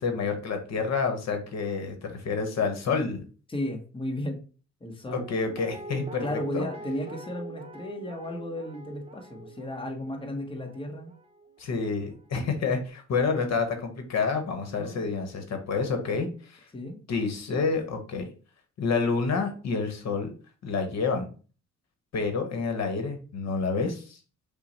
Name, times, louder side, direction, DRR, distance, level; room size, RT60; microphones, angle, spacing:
voice 1, 0.0-3.2 5.1-6.3 6.5-6.6 11.6-16.6 17.1-18.3 18.8-20.3 20.6-21.3 22.1-24.2, left 4 dB, 60° left, 6 dB, 1.1 m, -28 dB
voice 2, 3.5-4.4 4.8-5.2 6.2-11.1 14.7-15.1 16.7-17.0, left 1 dB, 15° left, 2 dB, 1.1 m, -34 dB
Guitar, 5.1-12.1 12.4-12.5, right 3 dB, 20° right, 0.7 m, -43 dB
5.6 x 2.2 x 4.1 m, 0.37 s
cardioid pair, 90°, 30 cm